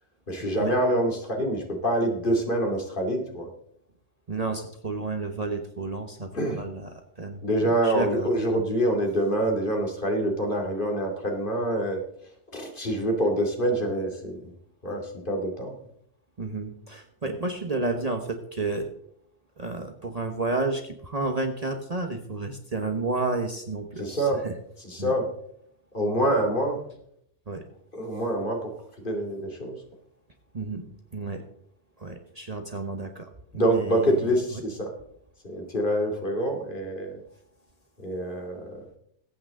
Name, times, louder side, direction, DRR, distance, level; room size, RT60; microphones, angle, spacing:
voice 1, 0.3-3.5 6.3-6.6 7.4-12.0 12.5-14.5 14.8-15.7 24.0-24.4 24.8-25.3 25.9-26.8 27.9-28.7 29.0-29.8 33.5-34.9 35.4-37.2 38.0-38.7, right 1 dB, 45° left, 1 dB, 2.8 m, -26 dB
voice 2, 4.3-8.3 16.4-18.9 19.6-24.5 25.0-25.1 27.5-27.6 30.5-30.8 31.1-31.4 32.0-34.3, right 3 dB, 35° right, 4 dB, 1.2 m, -31 dB
20.5 x 8.8 x 3.7 m, 0.69 s
omnidirectional pair, 1.2 m